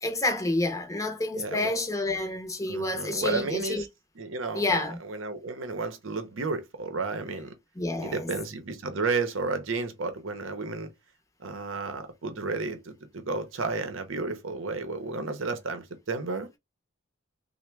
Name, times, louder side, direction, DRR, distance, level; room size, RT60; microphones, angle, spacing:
voice 1, 0.0-3.8 4.5-5.0 7.8-8.3, left 2 dB, 15° left, 0.6 m, -29 dB
voice 2, 1.3-1.7 2.7-3.9 4.2-7.5 8.0-10.9 11.4-16.6, right 3 dB, 70° right, 0.7 m, -32 dB
3.4 x 2.1 x 3.2 m
head